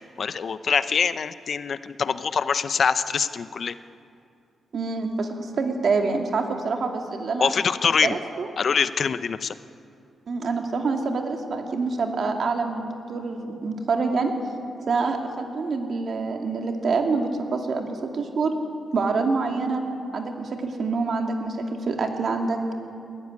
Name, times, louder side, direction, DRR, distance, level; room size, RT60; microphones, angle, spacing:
voice 1, 0.0-3.8 7.4-8.2 8.6-9.5, left 6 dB, 50° left, 13 dB, 0.7 m, -24 dB
voice 2, 4.7-7.5 8.0-8.5 10.3-14.3 14.9-18.5 18.9-19.8 20.1-22.7, right 4 dB, 55° right, 3 dB, 2.5 m, -26 dB
20.5 x 14.5 x 9.8 m, 2.5 s
cardioid pair, 120°, 0 cm